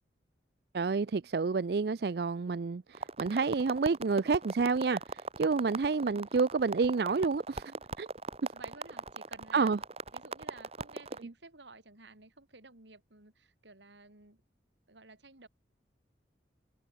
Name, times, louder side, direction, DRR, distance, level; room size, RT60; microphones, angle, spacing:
voice 1, 0.7-8.1 9.5-9.8, right 4 dB, 60° right, 0.4 m, -29 dB
sound 1, 2.9-11.2, right 3 dB, 35° right, 1.5 m, -40 dB
voice 2, 6.0-6.3 8.5-9.8 10.1-14.4 14.9-15.5, right 3 dB, 85° right, 4.1 m, -53 dB
head